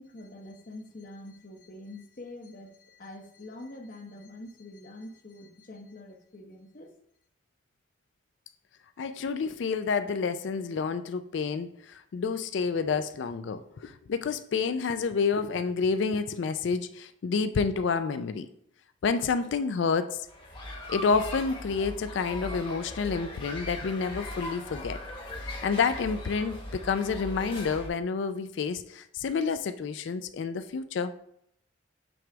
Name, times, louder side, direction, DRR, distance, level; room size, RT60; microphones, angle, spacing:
voice 1, 0.0-6.9, left 1 dB, 45° left, 3 dB, 0.8 m, -45 dB
voice 2, 9.0-18.5 19.0-20.3 20.9-25.0 25.4-31.1, left 5 dB, 70° left, 11 dB, 0.4 m, -29 dB
sound 1, 20.3-27.9, left 1 dB, 25° left, 1.1 m, -39 dB
6.1 x 3.4 x 5.0 m, 0.72 s
head